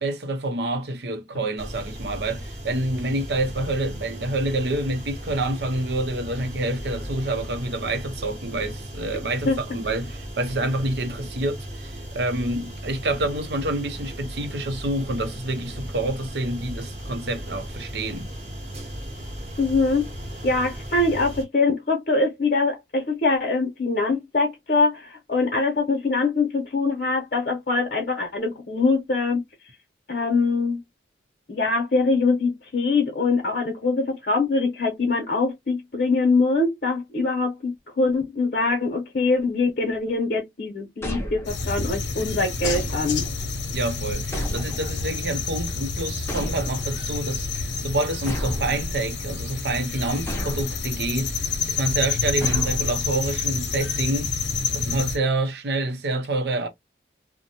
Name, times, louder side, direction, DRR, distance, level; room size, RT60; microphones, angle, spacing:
voice 1, 0.0-18.3 43.7-51.3 51.7-54.3 54.7-56.7, right 2 dB, 70° right, 0.6 m, -27 dB
sound 1, 1.6-21.4, equal, 35° right, 0.9 m, -36 dB
voice 2, 19.6-20.0 20.4-29.4 30.1-30.8 31.5-43.3, left 3 dB, 55° left, 0.8 m, -23 dB
sound 2, 41.0-41.9 42.6-43.5 44.3-45.2 46.3-47.1 48.3-49.3 50.3-51.0 52.4-53.3, equal, 15° left, 0.6 m, -32 dB
sound 3, 41.5-55.2, left 4 dB, 85° left, 0.7 m, -29 dB
2.6 x 2.1 x 2.8 m
head